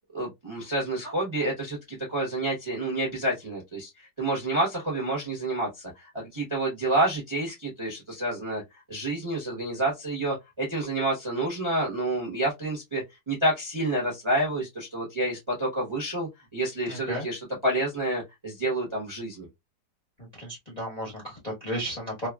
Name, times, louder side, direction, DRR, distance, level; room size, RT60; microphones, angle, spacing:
voice 1, 0.1-8.6 8.9-19.5, right 1 dB, 25° right, 0.6 m, -29 dB
voice 2, 16.9-17.3 20.4-22.3, equal, 30° left, 0.7 m, -34 dB
2.9 x 2.3 x 2.2 m
omnidirectional pair, 2.0 m